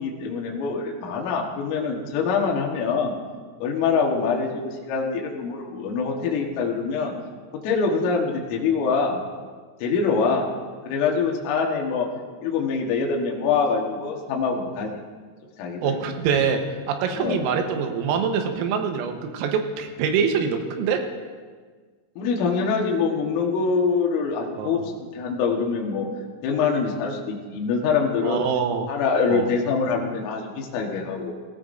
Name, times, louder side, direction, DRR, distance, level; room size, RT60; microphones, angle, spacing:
voice 1, 0.0-3.2 3.6-7.1 7.6-9.3 9.8-10.5 10.9-12.1 12.4-15.0 15.6-16.0 17.1-17.4 22.2-26.1 26.4-28.5 28.9-31.3, left 5 dB, 75° left, 0 dB, 4.1 m, -24 dB
voice 2, 15.8-21.0 24.6-24.8 28.2-28.9 29.3-29.5, right 6 dB, 85° right, 4 dB, 3.8 m, -25 dB
17.5 x 17.0 x 2.6 m, 1.5 s
omnidirectional pair, 6.0 m